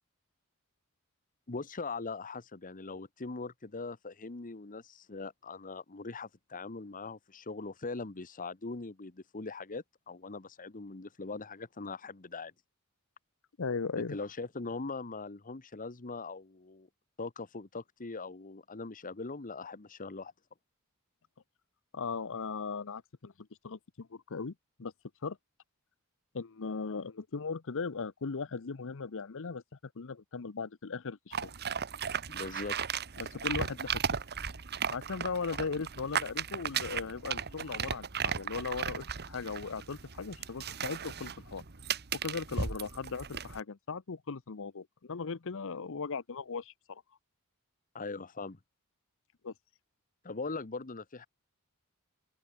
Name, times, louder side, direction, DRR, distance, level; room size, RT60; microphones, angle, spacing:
voice 1, 1.5-12.5 14.1-16.9 17.2-20.3 32.3-32.8 47.9-48.6 50.2-51.3, left 3 dB, 40° left, 1.1 m, -41 dB
voice 2, 13.6-14.2 21.9-23.3 23.6-24.5 24.8-24.9 25.2-25.4 26.3-29.6 30.0-31.5 33.2-34.0 34.9-41.6 42.1-47.0 49.4-49.5, left 4 dB, 60° left, 0.8 m, -38 dB
sound 1, 31.3-43.6, right 7 dB, 50° right, 1.3 m, -36 dB
open air
head